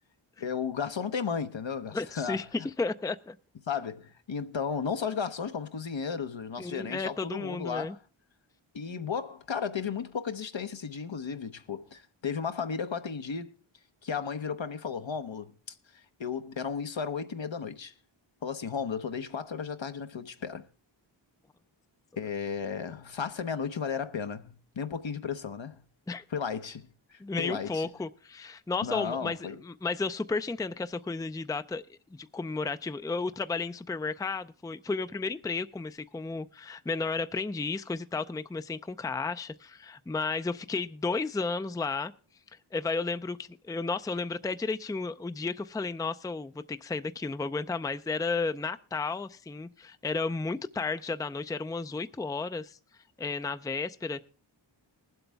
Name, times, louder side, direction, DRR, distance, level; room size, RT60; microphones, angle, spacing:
voice 1, 0.4-2.4 3.7-8.0 8.7-13.5 14.0-17.9 18.4-20.6 22.2-25.7 26.3-27.9 28.8-29.6, left 6 dB, 70° left, 1.0 m, -34 dB
voice 2, 1.9-3.4 6.6-8.0 26.1-26.2 27.2-29.4 29.6-42.1 42.7-52.8 53.2-54.2, left 4 dB, 10° left, 0.5 m, -33 dB
20.5 x 8.0 x 3.4 m
wide cardioid pair, 45°, 48 cm